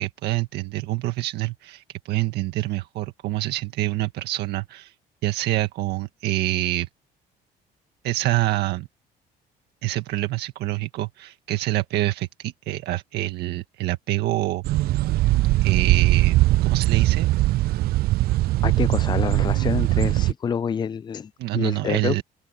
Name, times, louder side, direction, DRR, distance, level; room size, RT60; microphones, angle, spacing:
voice 1, 0.0-4.9 5.2-6.9 8.0-8.9 9.8-14.6 15.6-16.4 16.7-17.3 21.4-22.2, right 17 dB, 80° right, 1.8 m, -26 dB
sound 1, 14.6-20.3, right 17 dB, 65° right, 0.4 m, -20 dB
voice 2, 18.6-22.2, left 7 dB, 25° left, 0.4 m, -27 dB
open air
cardioid pair, 110°, 17 cm